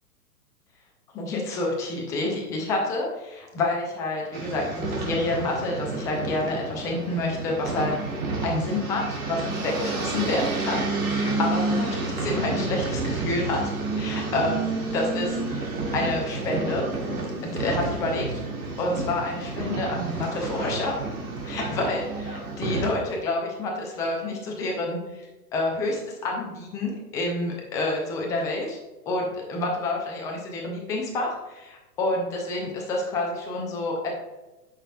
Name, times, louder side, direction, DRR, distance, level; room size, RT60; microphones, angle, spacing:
voice 1, 1.1-13.6 13.9-16.8 17.4-18.3 18.8-20.9 21.4-28.8 29.1-34.1, left 2 dB, 10° left, 0 dB, 0.4 m, -28 dB
sound 1, 4.3-22.9, right 3 dB, 60° right, 2.0 m, -30 dB
8.8 x 6.0 x 2.2 m, 1.1 s
figure-of-eight pair, 110°, 46 cm